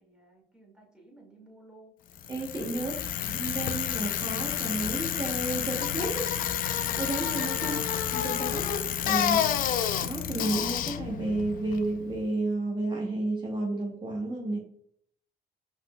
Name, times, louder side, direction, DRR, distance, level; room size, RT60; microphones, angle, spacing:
voice 1, 0.0-1.9 2.7-3.3 7.6-7.9, right 1 dB, 5° right, -2 dB, 1.9 m, -54 dB
Bicycle, 2.2-12.2, left 9 dB, 55° left, 0.4 m, -30 dB
voice 2, 2.3-6.3 7.0-7.8 8.2-9.4 10.0-14.6, right 2 dB, 30° right, -2 dB, 1.0 m, -32 dB
5.5 x 4.1 x 2.3 m, 0.65 s
cardioid pair, 110°, 17 cm